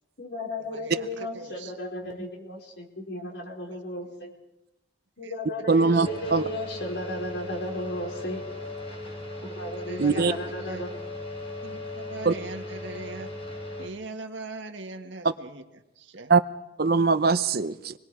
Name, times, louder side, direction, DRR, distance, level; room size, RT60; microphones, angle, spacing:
voice 1, 0.2-4.3 5.2-8.4 9.4-10.9, left 1 dB, 65° left, 0 dB, 4.7 m, -35 dB
voice 2, 0.7-1.7 5.2-5.3 5.7-6.1 9.9-10.4 10.7-10.9 11.6-13.3 13.8-15.6 16.0-16.3, right 3 dB, 80° right, 6 dB, 1.8 m, -40 dB
voice 3, 5.7-6.4 10.0-10.3 12.2-12.3 16.3-16.4 16.8-17.9, right 4 dB, 55° right, 12 dB, 0.7 m, -21 dB
sound 1, 6.0-13.9, left 2 dB, 30° left, 3.9 m, -38 dB
27.0 x 21.5 x 4.9 m, 0.91 s
head